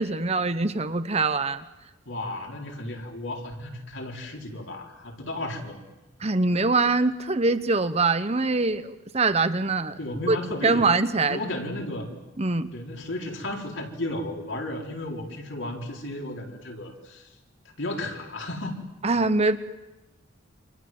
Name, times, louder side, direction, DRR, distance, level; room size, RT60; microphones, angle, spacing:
voice 1, 0.0-1.6 6.2-10.0 10.3-10.4 10.6-11.4 12.4-12.7 19.0-19.6, right 3 dB, 30° right, 11 dB, 1.1 m, -23 dB
voice 2, 2.0-5.8 10.0-11.0 11.3-12.1 12.7-17.3 17.6-18.8, left 1 dB, 70° left, 1 dB, 4.8 m, -34 dB
28.5 x 26.0 x 7.8 m, 1.1 s
head